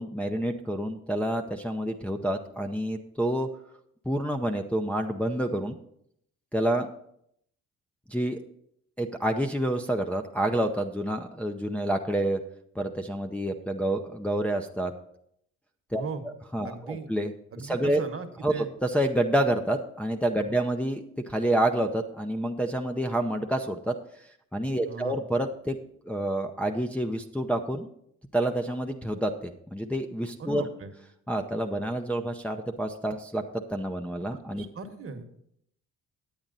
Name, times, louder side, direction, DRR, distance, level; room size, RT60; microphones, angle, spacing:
voice 1, 0.0-3.5 4.1-5.8 6.5-6.9 8.1-8.4 9.0-12.4 12.8-14.9 15.9-16.0 16.5-17.3 17.6-18.0 18.4-23.9 24.5-25.8 26.0-27.9 28.3-30.6 31.3-33.4 33.7-34.7, right 1 dB, 5° left, 2 dB, 0.6 m, -28 dB
voice 2, 15.9-16.2 16.6-17.1 17.5-18.7 20.4-20.5 24.8-25.2 30.4-30.9 34.5-35.3, right 4 dB, 50° right, 6 dB, 1.3 m, -38 dB
8.9 x 8.8 x 4.0 m, 0.71 s
cardioid pair, 90°, 30 cm